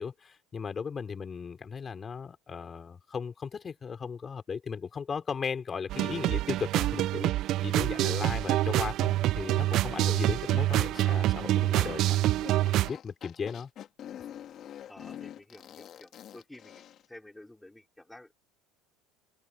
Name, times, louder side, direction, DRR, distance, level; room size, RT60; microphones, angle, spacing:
voice 1, 0.0-12.2 12.8-13.7, left 6 dB, 30° left, 5.3 m, -36 dB
sound 1, 5.9-12.9, right 15 dB, 55° right, 0.5 m, -26 dB
sound 2, 10.5-17.1, left 10 dB, 45° left, 3.2 m, -46 dB
voice 2, 14.9-18.4, left 1 dB, 5° left, 5.3 m, -51 dB
supercardioid pair, 100°, 0 cm